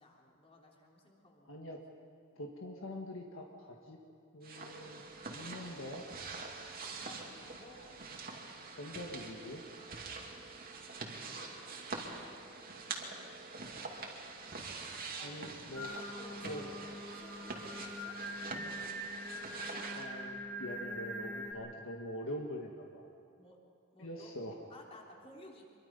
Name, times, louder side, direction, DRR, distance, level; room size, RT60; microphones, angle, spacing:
voice 1, 0.0-1.7 6.7-7.8 12.9-14.2 15.2-15.6 15.9-16.6 16.9-18.2 23.3-23.6 23.9-24.3 24.7-25.6, left 1 dB, 30° left, -1 dB, 3.6 m, -57 dB
voice 2, 1.5-1.8 2.4-4.0 4.3-6.0 8.8-9.6 15.2-15.9 16.4-16.7 19.9-23.1 24.0-24.6, left 1 dB, 65° left, 0 dB, 1.9 m, -44 dB
sound 1, 4.4-20.1, right 4 dB, 45° right, 2.5 m, -45 dB
Singing, 15.7-21.5, equal, 10° left, 2.5 m, -43 dB
25.5 x 23.0 x 5.5 m, 2.4 s
head